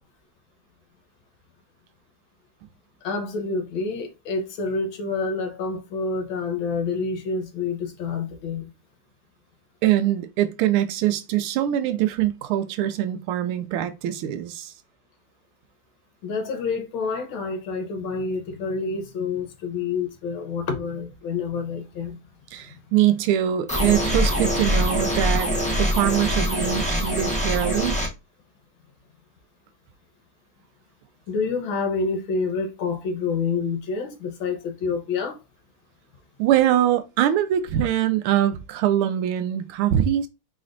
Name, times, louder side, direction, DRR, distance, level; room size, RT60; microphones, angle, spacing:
voice 1, 3.0-8.7 16.2-22.2 22.7-22.8 31.3-35.4, left 4 dB, 70° left, 1.7 m, -28 dB
voice 2, 9.8-14.7 22.5-25.5 25.8-27.9 36.4-40.3, right 11 dB, 90° right, 1.5 m, -23 dB
sound 1, 23.7-28.1, equal, 5° left, 0.7 m, -23 dB
4.2 x 4.0 x 2.5 m
omnidirectional pair, 2.3 m